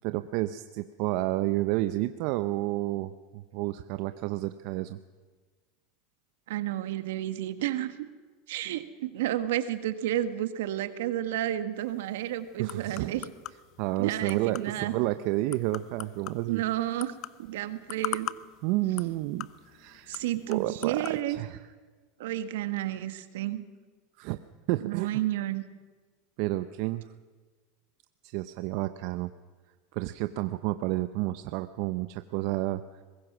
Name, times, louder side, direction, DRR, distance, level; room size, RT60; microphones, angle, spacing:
voice 1, 0.0-5.0 12.6-13.3 13.8-16.6 18.6-20.2 20.5-21.6 24.2-24.4 24.7-25.2 26.4-27.0 28.2-29.3 29.9-32.8, right 17 dB, 65° right, 11 dB, 0.8 m, -30 dB
voice 2, 6.5-8.1 8.5-13.2 14.0-14.9 16.5-17.1 17.5-18.3 20.1-21.4 22.2-23.6 24.8-25.6, right 13 dB, 80° right, 10 dB, 1.5 m, -31 dB
sound 1, 11.8-21.2, left 15 dB, 50° left, 0.7 m, -43 dB
23.0 x 21.0 x 6.2 m, 1.4 s
hypercardioid pair, 105°, 0 cm